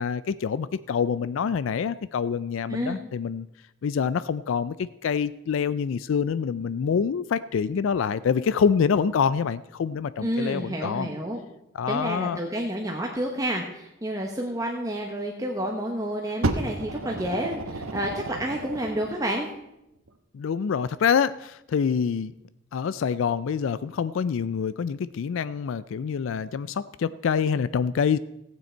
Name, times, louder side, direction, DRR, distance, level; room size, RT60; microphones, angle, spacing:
voice 1, 0.0-3.5 3.8-11.1 11.7-12.4 20.3-22.3 22.7-28.2, left 6 dB, 70° left, 16 dB, 0.3 m, -26 dB
voice 2, 10.2-11.4 11.9-19.5, right 1 dB, 15° right, 0 dB, 1.0 m, -29 dB
Fire, 16.4-19.2 20.1-20.2, right 2 dB, 85° right, 1.0 m, -31 dB
15.0 x 9.2 x 4.4 m, 0.87 s
head